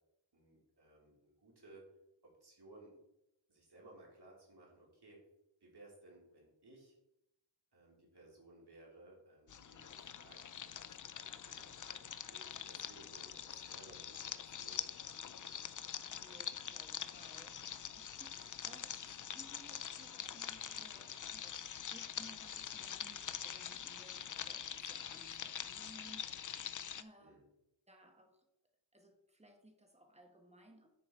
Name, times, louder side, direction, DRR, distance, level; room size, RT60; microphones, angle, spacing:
voice 1, 0.3-1.9 2.2-3.0 3.5-5.2 5.6-6.9 7.7-15.6 27.2-27.4, right 2 dB, 55° right, -3 dB, 3.4 m, -60 dB
sound 1, 9.5-27.0, left 8 dB, 45° left, 0.5 m, -45 dB
voice 2, 16.1-27.4 27.9-28.5 28.9-30.9, right 1 dB, 15° right, 4 dB, 1.6 m, -61 dB
9.6 x 4.8 x 4.5 m, 0.84 s
wide cardioid pair, 75°, 46 cm